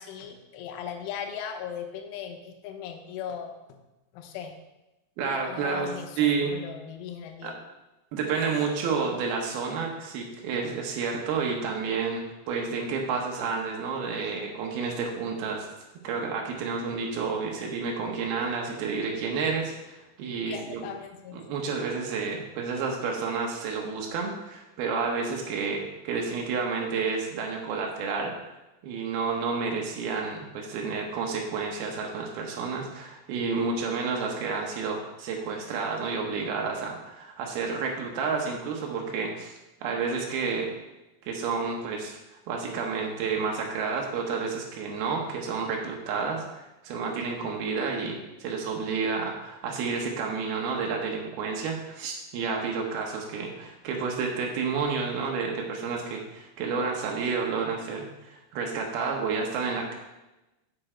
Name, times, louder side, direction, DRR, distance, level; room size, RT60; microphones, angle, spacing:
voice 1, 0.0-3.8 4.1-4.6 5.2-7.5 17.5-17.9 20.4-21.4 52.8-53.0, left 8 dB, 90° left, 5 dB, 3.6 m, -39 dB
voice 2, 5.2-5.9 6.2-6.6 7.4-7.5 8.1-15.7 16.0-20.9 21.3-28.3 28.8-39.5 39.8-40.7 41.2-42.2 42.5-59.9, right 5 dB, 85° right, 0 dB, 2.1 m, -30 dB
7.5 x 7.0 x 4.4 m, 1.0 s
omnidirectional pair, 6.0 m